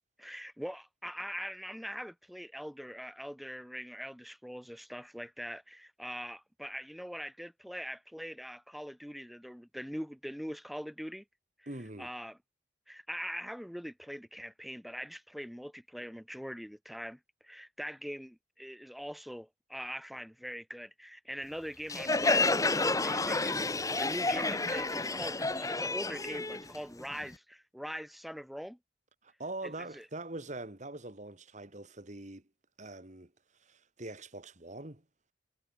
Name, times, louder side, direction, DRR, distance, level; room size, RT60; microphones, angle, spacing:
voice 1, 0.2-11.2 11.6-11.7 12.0-12.4 12.9-28.8 29.6-30.1, equal, ahead, 4.2 m, -42 dB
voice 2, 11.7-12.1 29.2-32.4 32.8-33.3 33.6-35.0, right 2 dB, 40° right, 2.2 m, -43 dB
Crowd, 21.9-27.3, left 3 dB, 20° left, 1.6 m, -30 dB
head